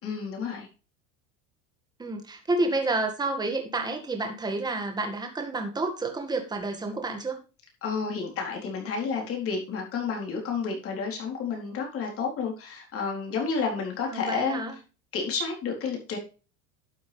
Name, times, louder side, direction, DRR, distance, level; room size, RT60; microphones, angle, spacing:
voice 1, 0.0-0.7 7.8-14.6 15.1-16.2, left 5 dB, 35° left, 0 dB, 4.2 m, -30 dB
voice 2, 2.0-7.4 14.1-14.7, right 2 dB, 10° right, 4 dB, 1.9 m, -29 dB
12.0 x 7.6 x 3.4 m, 0.33 s
supercardioid pair, 150°, 37 cm